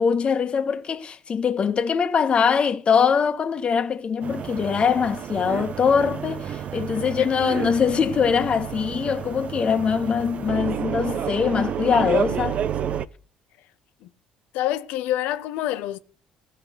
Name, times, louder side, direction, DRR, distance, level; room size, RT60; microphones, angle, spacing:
voice 1, 0.0-12.6, left 6 dB, 45° left, 1.5 m, -22 dB
sound 1, 4.2-13.1, right 9 dB, 50° right, 0.8 m, -30 dB
voice 2, 14.5-16.0, left 13 dB, 70° left, 0.8 m, -26 dB
15.5 x 5.9 x 7.9 m
hypercardioid pair, 60°, 3 cm